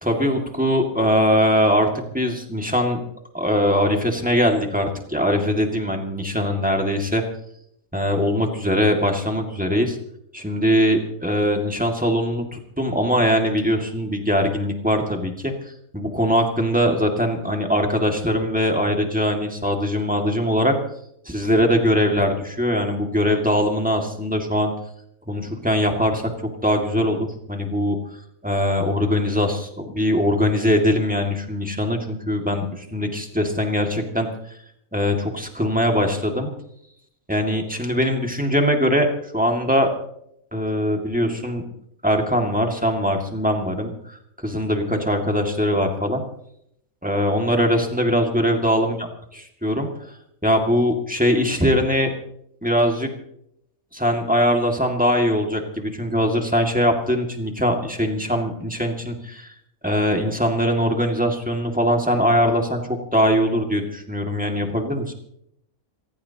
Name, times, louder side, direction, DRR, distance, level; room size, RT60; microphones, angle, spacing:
voice 1, 0.0-1.9 2.1-3.0 3.3-7.2 7.9-10.0 10.3-20.8 21.3-24.7 25.3-28.0 28.4-34.3 34.9-36.5 37.3-39.9 40.5-41.6 42.0-46.2 47.0-49.1 49.3-50.2 50.4-52.1 52.6-53.1 53.9-59.5 59.8-65.1, equal, 5° right, 2 dB, 2.0 m, -21 dB
27.0 x 15.5 x 2.9 m, 0.73 s
omnidirectional pair, 1.5 m